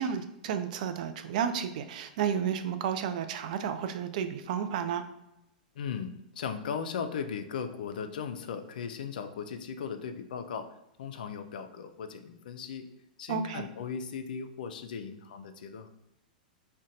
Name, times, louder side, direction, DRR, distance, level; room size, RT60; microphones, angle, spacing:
voice 1, 0.0-5.0 13.3-13.7, right 8 dB, 60° right, 9 dB, 0.3 m, -32 dB
voice 2, 5.8-10.7 11.0-12.9 13.2-15.9, left 6 dB, 75° left, 8 dB, 0.3 m, -37 dB
2.5 x 2.2 x 3.9 m, 0.85 s
hypercardioid pair, 110°, 5 cm